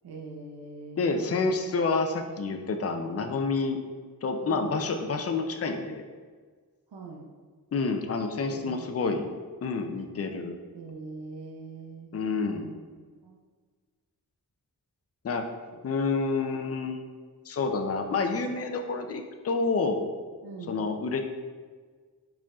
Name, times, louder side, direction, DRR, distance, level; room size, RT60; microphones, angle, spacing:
voice 1, 0.0-1.4 4.4-4.8 6.9-7.3 8.5-9.2 10.7-12.2 12.5-13.4 20.4-20.8, right 3 dB, 80° right, -1 dB, 0.7 m, -43 dB
voice 2, 1.0-3.8 4.2-6.0 7.7-9.3 9.6-10.6 12.1-12.7 15.2-15.5 15.8-17.0 17.5-20.1 20.7-21.2, left 4 dB, 40° left, 5 dB, 0.5 m, -28 dB
4.6 x 4.4 x 2.4 m, 1.5 s
cardioid pair, 50°, 38 cm